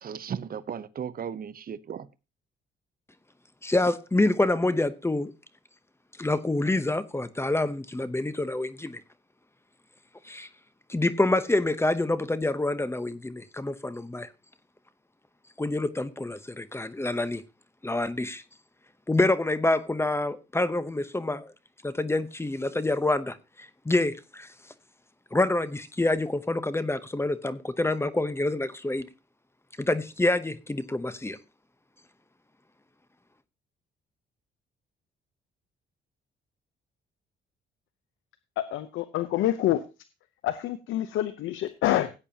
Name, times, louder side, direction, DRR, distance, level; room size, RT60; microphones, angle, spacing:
voice 1, 0.0-2.1, right 8 dB, 45° right, 0.9 m, -36 dB
voice 2, 3.6-5.3 6.2-9.0 10.2-10.5 10.9-14.3 15.6-17.4 17.8-18.4 19.1-21.5 21.8-24.5 25.3-29.1 29.8-31.4, left 2 dB, 15° left, 0.9 m, -27 dB
voice 3, 38.6-39.8 40.4-42.2, left 13 dB, 85° left, 0.8 m, -27 dB
16.5 x 8.8 x 2.9 m
cardioid pair, 90°, 20 cm